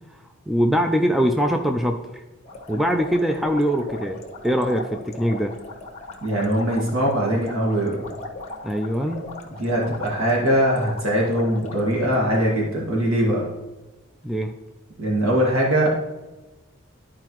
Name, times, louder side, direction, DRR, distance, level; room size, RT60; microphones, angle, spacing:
voice 1, 0.5-2.2 2.7-5.6 8.6-9.2 14.2-14.5, equal, ahead, 4 dB, 0.4 m, -22 dB
sound 1, 2.4-12.4, left 2 dB, 35° left, 1.1 m, -38 dB
voice 2, 6.2-8.1 9.6-13.5 15.0-15.9, equal, 85° right, -3 dB, 1.9 m, -21 dB
12.5 x 4.8 x 3.0 m, 1.1 s
head